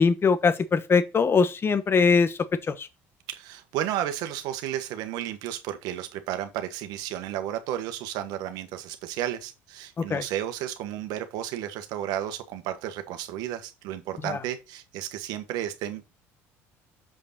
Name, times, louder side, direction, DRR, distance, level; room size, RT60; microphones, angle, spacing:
voice 1, 0.0-2.3 2.7-2.9 10.0-10.2 14.3-14.4, left 5 dB, 35° left, 1.1 m, -22 dB
voice 2, 3.3-16.2, right 11 dB, 70° right, 1.5 m, -33 dB
7.5 x 5.3 x 4.3 m
hypercardioid pair, 75°, 7 cm